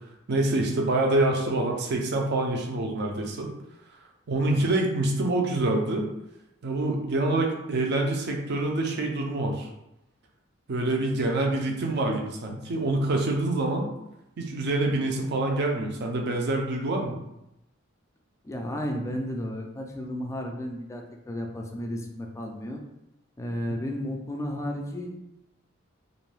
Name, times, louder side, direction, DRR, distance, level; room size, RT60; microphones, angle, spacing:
voice 1, 0.3-3.5 4.3-6.1 6.6-9.7 10.7-13.9 14.4-17.2, right 2 dB, 55° right, 1 dB, 0.5 m, -26 dB
voice 2, 18.4-22.8 23.4-25.2, equal, 15° left, 2 dB, 0.3 m, -33 dB
2.5 x 2.2 x 3.2 m, 0.86 s
head